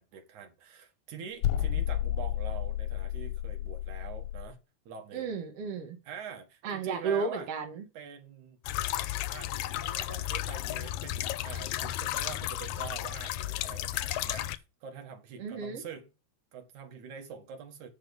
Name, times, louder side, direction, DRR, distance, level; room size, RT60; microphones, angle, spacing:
voice 1, 0.0-4.6 4.9-5.3 6.1-7.5 7.9-8.6 9.3-16.1 16.5-17.9, right 6 dB, 85° right, 3.0 m, -45 dB
sound 1, 1.4-4.5, left 12 dB, 65° left, 1.8 m, -31 dB
voice 2, 5.1-6.0 6.6-7.9 15.4-15.8, right 5 dB, 55° right, 2.6 m, -33 dB
sound 2, 8.6-14.6, left 14 dB, 90° left, 2.0 m, -33 dB
9.2 x 5.3 x 5.4 m
omnidirectional pair, 3.3 m